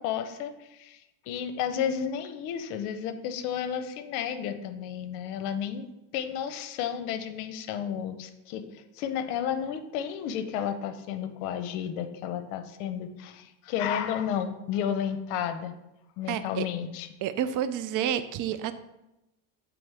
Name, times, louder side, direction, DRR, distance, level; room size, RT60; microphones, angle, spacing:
voice 1, 0.0-5.9 6.1-15.7 16.2-17.1, left 8 dB, 80° left, 10 dB, 0.8 m, -32 dB
voice 2, 16.3-16.7 17.2-18.7, right 10 dB, 45° right, 12 dB, 0.4 m, -29 dB
7.8 x 3.7 x 3.4 m, 0.93 s
supercardioid pair, 110°, 44 cm